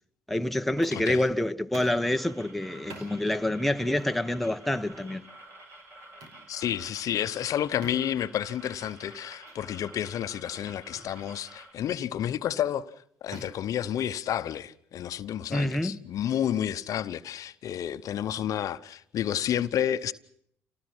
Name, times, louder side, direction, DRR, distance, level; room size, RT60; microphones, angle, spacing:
voice 1, 0.3-5.2 15.5-16.0, left 1 dB, ahead, 1.0 m, -27 dB
sound 1, 0.8-1.2 1.7-2.1 2.9-3.1 4.0-4.2 5.0-5.2 6.2-6.4 7.8-8.2 9.4-9.6 10.0-10.2 10.9-11.2 12.1-12.4 13.3-14.5, right 3 dB, 70° right, 5.2 m, -47 dB
voice 2, 0.9-1.2 6.5-12.9 13.2-20.1, left 10 dB, 55° left, 0.9 m, -30 dB
sound 2, 1.9-11.7, right 1 dB, 45° right, 6.9 m, -50 dB
27.5 x 19.0 x 6.1 m
hypercardioid pair, 65°, 7 cm